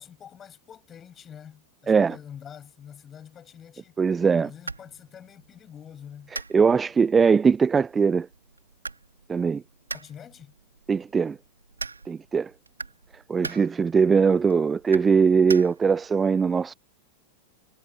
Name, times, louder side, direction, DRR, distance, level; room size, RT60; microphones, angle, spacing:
voice 1, 0.0-4.0 4.4-6.3 9.9-10.5, left 8 dB, 25° left, 7.5 m, -46 dB
voice 2, 4.0-4.5 6.5-8.3 9.3-9.6 10.9-11.4 12.1-12.5 13.3-16.7, right 5 dB, 15° right, 0.6 m, -21 dB
sound 1, 4.3-16.1, right 4 dB, 80° right, 5.3 m, -42 dB
figure-of-eight pair, 90°, 0 cm